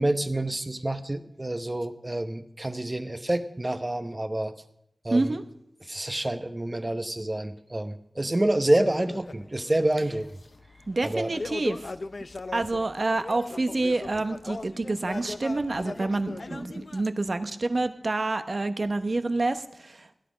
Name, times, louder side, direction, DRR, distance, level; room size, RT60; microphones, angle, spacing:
voice 1, 0.0-4.5 5.0-5.4 5.8-10.3 11.0-11.3, right 1 dB, 30° right, 9 dB, 1.0 m, -27 dB
voice 2, 5.1-5.4 10.9-11.9 12.5-20.1, right 2 dB, 60° right, 9 dB, 1.0 m, -28 dB
sound 1, 8.8-17.0, left 3 dB, 65° left, 0.5 m, -39 dB
17.0 x 10.5 x 5.1 m, 0.78 s
wide cardioid pair, 50°, 0 cm